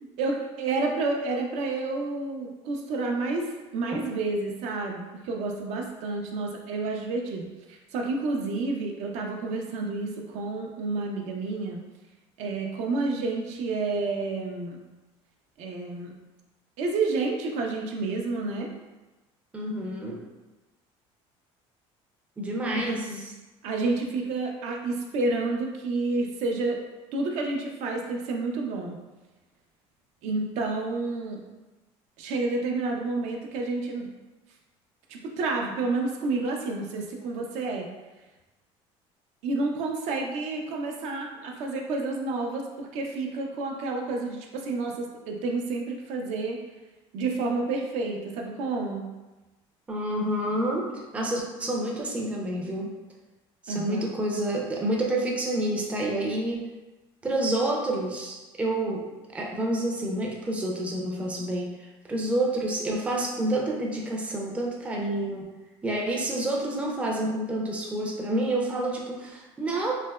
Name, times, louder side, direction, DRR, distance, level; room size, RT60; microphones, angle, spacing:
voice 1, 0.2-3.5 3.7-11.8 12.4-14.8 15.6-16.1 16.8-18.7 22.9-23.2 23.6-26.8 27.1-29.0 30.2-31.4 32.2-34.1 35.1-37.9 39.4-46.6 47.1-49.1 53.7-54.1, right 3 dB, 70° right, 1 dB, 0.5 m, -30 dB
voice 2, 19.5-20.2 22.4-23.3 49.9-50.9 51.1-52.9 53.6-56.7 57.2-65.5 65.8-69.9, right 1 dB, 10° right, -2 dB, 0.4 m, -28 dB
3.3 x 2.8 x 2.2 m, 1.1 s
cardioid pair, 140°, 12 cm